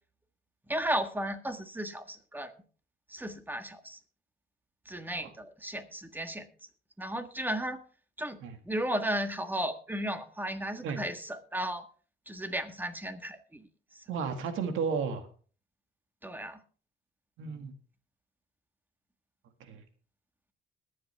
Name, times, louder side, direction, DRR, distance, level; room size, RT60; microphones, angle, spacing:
voice 1, 0.7-2.5 3.1-4.0 4.8-6.5 7.0-7.8 8.2-8.4 8.6-11.8 12.3-13.7 13.9-14.0 16.2-16.6, right 1 dB, 10° right, 8 dB, 1.6 m, -34 dB
voice 2, 14.1-15.3 17.4-17.7 19.7-19.8, right 5 dB, 85° right, 7 dB, 2.0 m, -33 dB
21.5 x 7.7 x 3.5 m, 0.41 s
cardioid pair, 90°, 20 cm